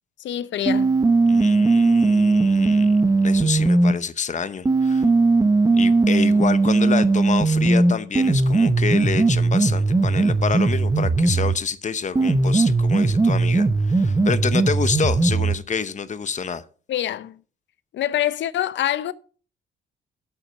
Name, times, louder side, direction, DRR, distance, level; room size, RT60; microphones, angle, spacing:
voice 1, 0.2-1.0 16.9-17.4 17.9-19.1, left 12 dB, 65° left, 0.7 m, -25 dB
sound 1, 0.7-3.9 4.7-11.6 12.2-15.6, right 3 dB, 15° right, 0.8 m, -18 dB
voice 2, 1.3-5.1 5.7-16.6, left 6 dB, 40° left, 0.9 m, -28 dB
8.5 x 7.9 x 5.7 m
cardioid pair, 90°, 20 cm